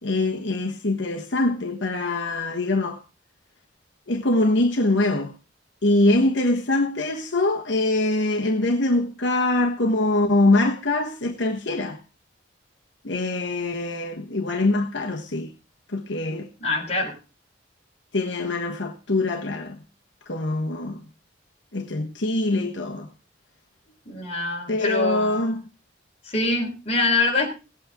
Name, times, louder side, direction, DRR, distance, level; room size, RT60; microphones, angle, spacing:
voice 1, 0.0-3.0 4.1-5.3 5.8-12.0 13.0-15.5 15.9-16.5 18.1-19.8 20.3-21.0 21.7-23.1 24.7-25.6, left 2 dB, 70° left, 1.3 m, -23 dB
voice 2, 16.6-17.2 24.1-25.4 26.2-27.5, left 3 dB, 30° left, 4.1 m, -24 dB
18.0 x 8.8 x 3.6 m
head